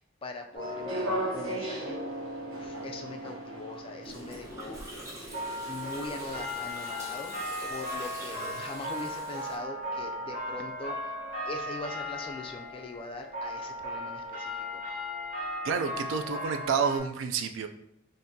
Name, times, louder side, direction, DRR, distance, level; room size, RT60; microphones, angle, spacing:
voice 1, 0.2-2.0 2.4-5.4 5.6-7.3 7.7-11.2 11.5-14.8, left 2 dB, 25° left, 4 dB, 0.3 m, -42 dB
sound 1, 0.5-17.0, left 1 dB, 40° right, 0.9 m, -37 dB
sound 2, 0.6-9.2, right 1 dB, 90° right, 1.0 m, -41 dB
Gurgling, 4.0-9.6, right 1 dB, 15° right, 0.9 m, -44 dB
voice 2, 15.6-17.7, right 6 dB, 70° right, 7 dB, 0.3 m, -29 dB
3.5 x 2.6 x 2.7 m, 0.75 s
head